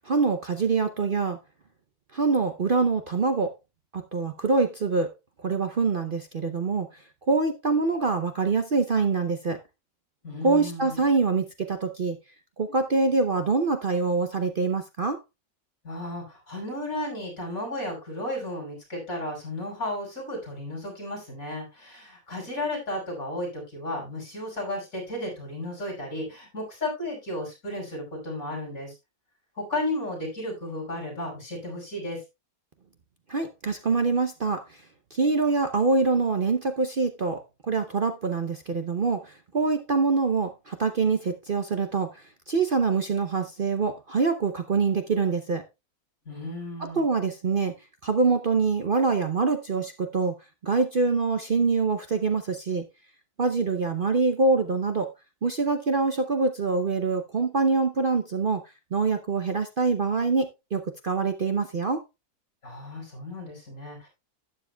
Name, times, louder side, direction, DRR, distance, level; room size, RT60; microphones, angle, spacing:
voice 1, 0.0-1.4 2.1-3.5 3.9-5.1 5.4-9.6 10.4-12.2 12.6-15.2 33.3-34.8 35.1-37.4 37.7-45.6 46.8-47.7 48.0-50.3 50.6-52.8 53.4-55.1 55.4-58.6 58.9-62.0, right 4 dB, 45° right, 0.8 m, -25 dB
voice 2, 10.2-11.0 15.8-28.9 29.6-32.2 46.3-47.0 62.6-64.1, left 1 dB, 65° left, 6.3 m, -34 dB
12.0 x 9.6 x 2.3 m
omnidirectional pair, 1.6 m